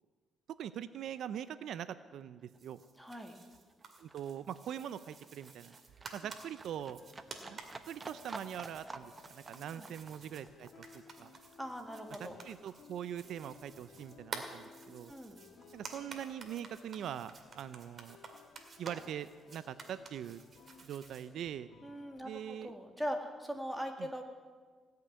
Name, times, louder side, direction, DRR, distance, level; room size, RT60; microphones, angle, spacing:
voice 1, 0.5-2.8 4.0-5.7 6.1-7.0 7.5-7.6 7.8-11.3 12.2-15.1 15.7-18.2 18.8-20.4 20.8-21.7 22.2-22.7 24.0-24.1, right 9 dB, 75° right, 14 dB, 0.5 m, -43 dB
Livestock farm animals working animals, 1.4-1.5 1.7-12.7 13.0-14.0 14.3-14.4, right 3 dB, 25° right, 0.9 m, -52 dB
sound 1, 2.5-21.3, right 4 dB, 45° right, 2.1 m, -52 dB
voice 2, 3.0-3.4 9.8-9.9 11.6-12.4 15.1-15.4 21.8-24.2, equal, ahead, 3 dB, 2.0 m, -41 dB
sound 2, 7.0-22.6, left 6 dB, 65° left, 1.4 m, -60 dB
17.0 x 6.6 x 9.5 m, 1.5 s
cardioid pair, 90°, 0 cm